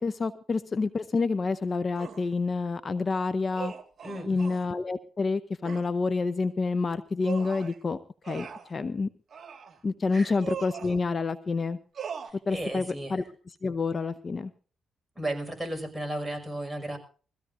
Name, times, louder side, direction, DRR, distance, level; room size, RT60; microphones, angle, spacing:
voice 1, 0.0-3.7 4.3-8.0 8.2-9.1 9.8-11.8 12.5-12.9 13.1-13.2 13.6-14.5, left 4 dB, 40° left, 14 dB, 0.7 m, -28 dB
sound 1, 2.0-2.3 3.5-4.7 5.6-5.9 7.2-7.8 8.2-8.7 9.3-9.8 10.4-11.0 12.0-12.3, right 7 dB, 50° right, 2.0 m, -39 dB
voice 2, 4.0-4.4 10.1-10.3 12.2-13.3 15.2-17.0, right 1 dB, 10° right, 4 dB, 5.8 m, -34 dB
22.5 x 15.5 x 2.7 m, 0.39 s
cardioid pair, 65°, 0 cm